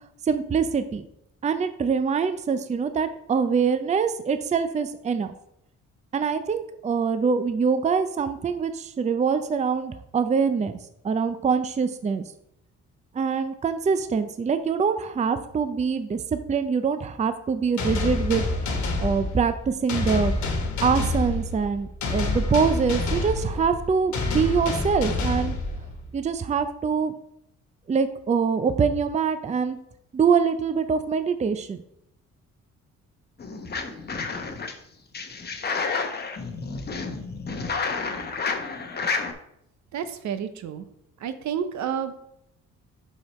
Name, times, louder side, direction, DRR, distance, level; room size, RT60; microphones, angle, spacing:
voice 1, 0.2-1.1 1.4-5.3 6.1-10.7 11.0-12.2 13.1-18.5 19.0-20.4 20.8-25.5 26.1-27.1 27.9-29.8 30.1-31.8, right 6 dB, 25° right, 10 dB, 0.5 m, -24 dB
sound 1, 17.8-26.2, left 2 dB, 70° left, 1.3 m, -27 dB
sound 2, 33.4-34.7 35.1-39.3, left 4 dB, 35° left, 0.8 m, -30 dB
voice 2, 39.9-40.8 41.2-42.1, right 8 dB, 70° right, 10 dB, 0.7 m, -30 dB
5.7 x 5.0 x 4.2 m, 0.76 s
cardioid pair, 90°, 30 cm